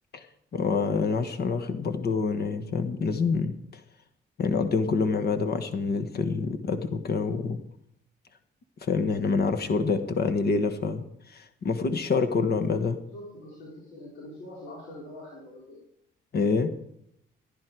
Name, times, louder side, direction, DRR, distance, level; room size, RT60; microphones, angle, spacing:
voice 1, 0.5-3.6 4.4-7.6 8.8-13.0 16.3-16.7, left 4 dB, 55° left, 9 dB, 1.3 m, -26 dB
voice 2, 13.1-15.8, left 1 dB, 90° left, -6 dB, 4.2 m, -44 dB
14.5 x 10.5 x 4.7 m, 0.76 s
cardioid pair, 90°, 20 cm